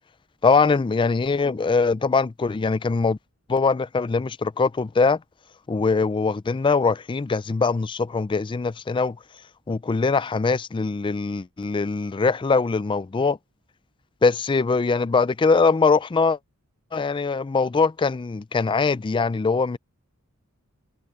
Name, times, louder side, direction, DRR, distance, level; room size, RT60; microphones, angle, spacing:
voice 1, 0.4-3.2 3.5-5.2 5.7-9.2 9.7-13.4 14.2-16.4 16.9-19.8, left 4 dB, 20° left, 0.3 m, -22 dB
head